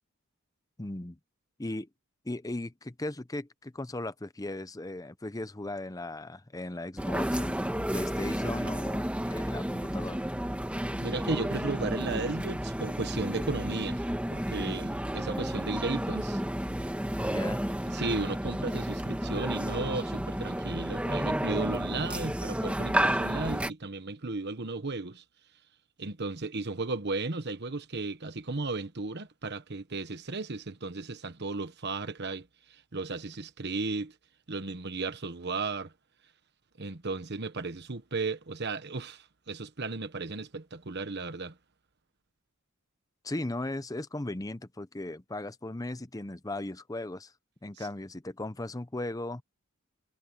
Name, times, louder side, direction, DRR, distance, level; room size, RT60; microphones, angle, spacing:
voice 1, 0.8-1.2 1.6-1.9 2.2-10.2 14.7-14.8 17.2-17.6 43.2-47.3 47.6-49.4, left 2 dB, 15° left, 0.7 m, -37 dB
sound 1, 7.0-23.7, equal, 5° right, 1.3 m, -31 dB
voice 2, 11.0-16.4 17.4-17.5 17.8-25.2 26.0-34.1 34.5-35.9 36.8-41.6 47.8-47.9, right 3 dB, 50° right, 1.2 m, -35 dB
head